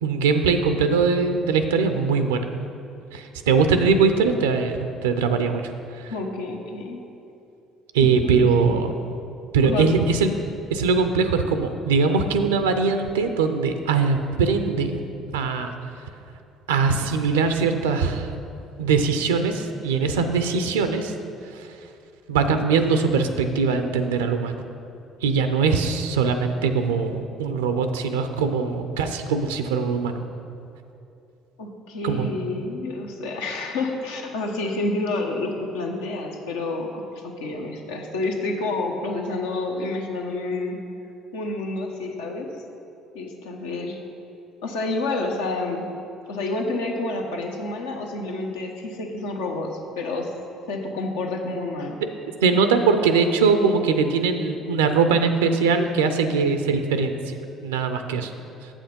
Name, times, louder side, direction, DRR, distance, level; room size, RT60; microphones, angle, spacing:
voice 1, 0.0-2.4 3.1-5.7 6.0-6.1 7.9-8.9 9.5-10.3 10.7-15.0 15.3-15.7 16.7-18.3 18.8-21.1 21.5-21.7 22.3-24.6 25.2-30.2 32.0-32.3 52.4-57.2 57.6-58.3, right 5 dB, 85° right, 8 dB, 0.4 m, -21 dB
voice 2, 6.1-7.0 8.0-8.8 9.6-9.9 31.6-40.8 41.3-42.5 43.1-44.0 44.6-45.9 46.3-50.3 50.7-52.0, left 2 dB, 80° left, 2 dB, 0.9 m, -29 dB
7.7 x 6.2 x 5.2 m, 2.7 s
hypercardioid pair, 55°, 0 cm